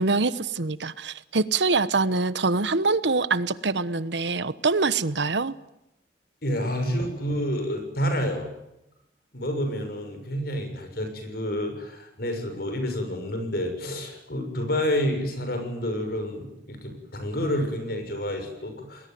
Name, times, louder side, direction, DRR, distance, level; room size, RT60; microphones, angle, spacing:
voice 1, 0.0-5.5, right 3 dB, 80° right, 15 dB, 1.1 m, -24 dB
voice 2, 6.4-8.5 9.3-19.1, equal, 60° left, 6 dB, 6.9 m, -29 dB
29.0 x 21.0 x 9.4 m, 0.88 s
head